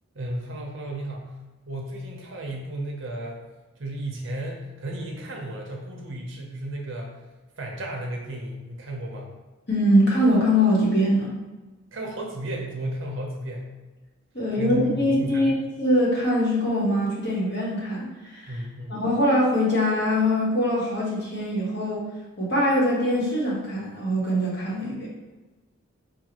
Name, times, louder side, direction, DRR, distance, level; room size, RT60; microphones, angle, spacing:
voice 1, 0.1-1.3 1.7-3.4 3.8-7.2 7.6-9.3 11.9-13.6 14.6-15.5 18.5-19.0, right 1 dB, 60° right, -1 dB, 0.7 m, -33 dB
voice 2, 9.7-11.3 14.3-15.5 15.8-18.5 18.9-22.1 22.4-25.1, equal, 50° left, -5 dB, 1.2 m, -22 dB
5.0 x 2.3 x 2.9 m, 1.2 s
head